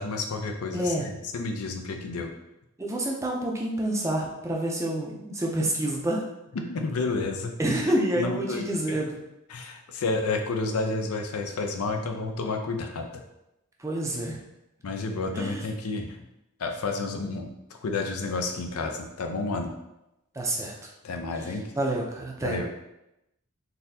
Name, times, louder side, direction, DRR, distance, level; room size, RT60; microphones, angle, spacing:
voice 1, 0.0-2.3 6.5-7.5 8.2-9.0 9.5-13.2 14.8-16.2 16.6-17.5 17.8-19.7 21.0-21.7 22.4-22.7, left 3 dB, 80° left, 4 dB, 0.5 m, -30 dB
voice 2, 0.7-1.1 2.8-6.2 7.6-9.2 13.8-14.4 15.3-15.6 20.3-20.7 21.8-22.6, right 1 dB, 15° right, -2 dB, 0.5 m, -28 dB
4.0 x 2.7 x 2.7 m, 0.90 s
head